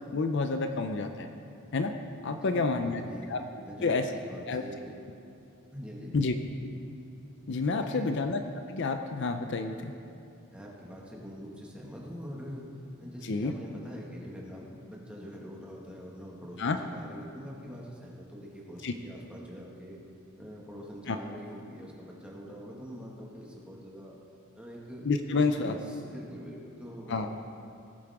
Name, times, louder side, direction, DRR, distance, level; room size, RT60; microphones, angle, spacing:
voice 1, 0.1-1.3 1.7-1.9 2.2-3.0 3.3-3.4 3.8-4.1 4.5-4.6 6.1-6.3 7.5-8.4 8.7-9.9 13.2-13.5 16.6-16.8 18.8-18.9 21.1-21.2 25.0-25.7 27.1-27.3, left 3 dB, 55° left, 6 dB, 0.5 m, -29 dB
voice 2, 2.4-3.3 3.6-4.9 5.7-6.1 7.8-8.2 10.5-12.7 13.0-20.0 20.4-24.2 24.5-25.0 25.3-27.3, equal, 5° right, -3 dB, 1.7 m, -44 dB
18.5 x 8.6 x 3.6 m, 2.6 s
head